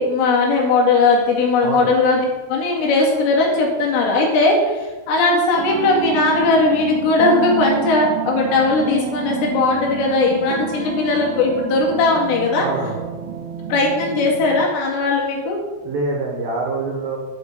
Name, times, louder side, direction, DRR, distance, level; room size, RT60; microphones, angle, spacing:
voice 1, 0.0-12.7 13.7-15.6, left 3 dB, 80° left, -2 dB, 4.6 m, -18 dB
sound 1, 5.6-14.6, right 9 dB, 90° right, 3.4 m, -29 dB
voice 2, 12.6-13.0 15.8-17.2, right 3 dB, 65° right, -1 dB, 2.6 m, -25 dB
9.6 x 5.8 x 8.4 m, 1.2 s
omnidirectional pair, 5.8 m